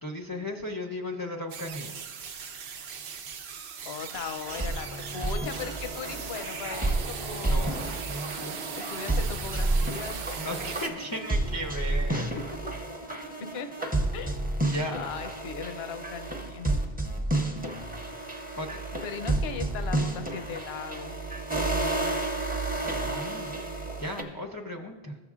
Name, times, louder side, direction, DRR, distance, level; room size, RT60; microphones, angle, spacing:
voice 1, 0.0-2.0 7.4-7.7 8.0-8.6 10.4-12.3 14.6-14.9 18.6-18.7 22.8-23.5 24.0-25.2, left 1 dB, 30° left, 2 dB, 0.4 m, -36 dB
sound 1, 1.5-10.9, right 6 dB, 80° right, 0.9 m, -39 dB
voice 2, 3.8-7.9 8.9-10.2 12.1-12.4 13.4-14.4 14.9-16.7 19.0-21.2, left 6 dB, 85° left, 8 dB, 0.9 m, -38 dB
sound 2, 4.5-24.2, right 2 dB, 10° right, 0.6 m, -31 dB
14.5 x 7.0 x 2.4 m, 1.3 s
omnidirectional pair, 1.0 m